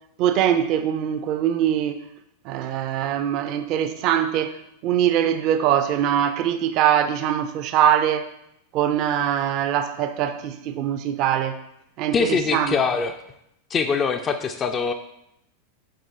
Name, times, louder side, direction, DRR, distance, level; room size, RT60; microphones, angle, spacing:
voice 1, 0.2-2.1 2.4-8.3 8.7-11.6 12.0-12.7, right 10 dB, 40° right, 10 dB, 0.5 m, -22 dB
voice 2, 12.1-13.2 13.7-14.9, left 5 dB, 25° left, 6 dB, 0.4 m, -23 dB
7.4 x 4.7 x 2.8 m, 0.79 s
figure-of-eight pair, 90°, 0 cm